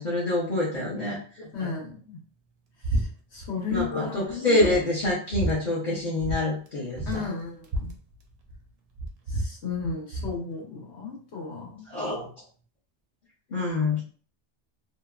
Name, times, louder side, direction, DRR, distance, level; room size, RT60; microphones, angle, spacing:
voice 1, 0.0-1.7 3.7-7.2 11.9-12.3 13.5-14.0, left 2 dB, 45° left, -7 dB, 0.8 m, -26 dB
voice 2, 1.5-2.2 2.8-4.7 7.1-7.9 9.3-11.9, left 5 dB, 75° left, -2 dB, 1.2 m, -34 dB
sound 1, 2.8-3.1 3.3-3.9 4.3-4.4 4.6-5.6 6.2-6.4 6.7-6.8 6.9-8.6 8.9-10.4, right 1 dB, 65° right, 0.8 m, -30 dB
2.9 x 2.2 x 2.3 m, 0.43 s
omnidirectional pair, 1.2 m